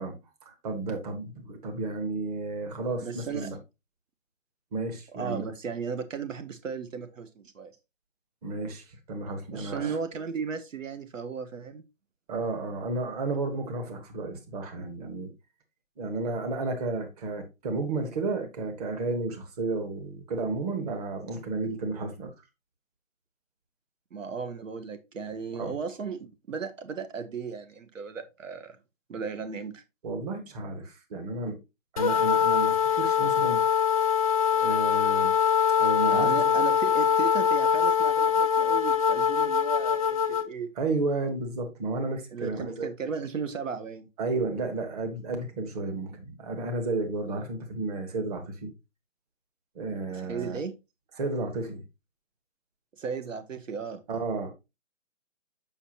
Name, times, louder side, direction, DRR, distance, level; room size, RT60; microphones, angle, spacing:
voice 1, 0.0-3.6 4.7-5.5 8.4-10.0 12.3-15.3 16.0-22.3 25.5-25.7 30.0-31.6 31.9-33.6 34.5-35.3 35.8-36.6 40.7-42.9 44.2-48.7 49.7-50.6 51.1-51.8 54.1-54.5, right 3 dB, 30° right, 1.4 m, -32 dB
voice 2, 3.0-3.5 5.1-7.7 9.5-11.8 24.1-28.8 29.1-29.8 36.1-40.7 42.3-44.1 50.1-50.8 53.0-54.0, right 6 dB, 75° right, 1.1 m, -35 dB
sound 1, 32.0-40.5, left 6 dB, 30° left, 0.6 m, -23 dB
7.1 x 5.8 x 2.9 m
hypercardioid pair, 155°, 39 cm